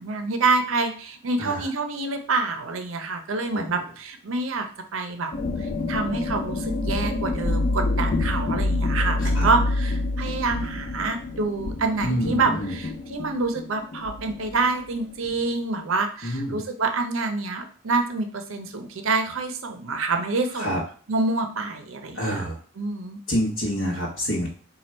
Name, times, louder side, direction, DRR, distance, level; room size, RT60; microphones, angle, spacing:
voice 1, 0.0-4.7 4.9-5.3 5.6-20.8 21.1-22.5 22.8-23.2, right 3 dB, 75° right, 6 dB, 0.6 m, -27 dB
sound 1, 5.3-15.3, left 2 dB, 40° left, 0.4 m, -27 dB
voice 2, 12.0-12.7 16.2-16.6 20.6-20.8 22.1-22.6 23.3-24.5, equal, 60° left, -5 dB, 0.9 m, -27 dB
4.4 x 2.3 x 4.3 m, 0.42 s
head